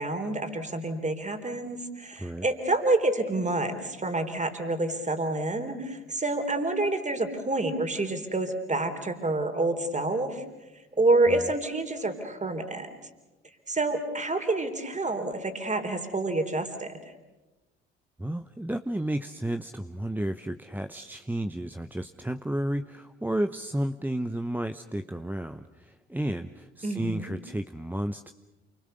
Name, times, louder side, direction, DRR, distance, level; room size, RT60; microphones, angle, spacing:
voice 1, 0.0-10.4 11.0-12.9 13.7-17.0 26.8-27.3, right 2 dB, 20° right, 7 dB, 3.7 m, -28 dB
voice 2, 18.2-28.3, right 1 dB, 5° right, 7 dB, 0.8 m, -32 dB
28.5 x 23.5 x 6.7 m, 1.1 s
figure-of-eight pair, 50°, 33 cm